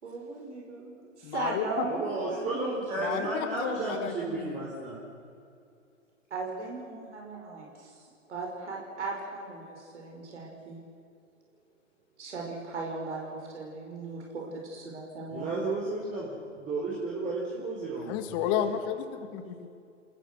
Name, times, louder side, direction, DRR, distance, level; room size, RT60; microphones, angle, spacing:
voice 1, 0.0-4.3 6.3-7.9 8.3-10.8 12.2-15.5, right 3 dB, 65° right, -1 dB, 5.5 m, -38 dB
voice 2, 1.2-1.9 3.0-4.7 18.1-19.7, left 9 dB, 30° left, 9 dB, 1.8 m, -32 dB
voice 3, 1.9-5.1 15.3-18.5, right 2 dB, 20° right, -4 dB, 4.5 m, -33 dB
29.5 x 20.0 x 6.2 m, 2.5 s
figure-of-eight pair, 115°, 38 cm